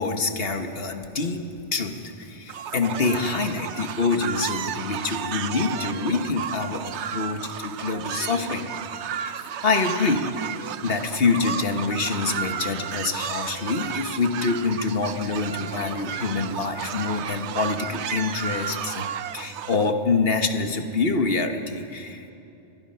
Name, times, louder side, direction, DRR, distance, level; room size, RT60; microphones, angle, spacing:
voice 1, 0.0-1.4 1.7-6.8 7.1-8.7 9.2-9.3 9.6-10.2 10.8-19.1 19.3-22.3, left 4 dB, 60° left, 6 dB, 1.6 m, -26 dB
sound 1, 2.5-19.9, right 8 dB, 85° right, 1.0 m, -33 dB
sound 2, 8.2-8.9 9.2-9.4 10.0-10.1 10.9-11.2, right 1 dB, 45° right, 2.2 m, -46 dB
25.0 x 19.0 x 5.7 m, 2.8 s
omnidirectional pair, 1.1 m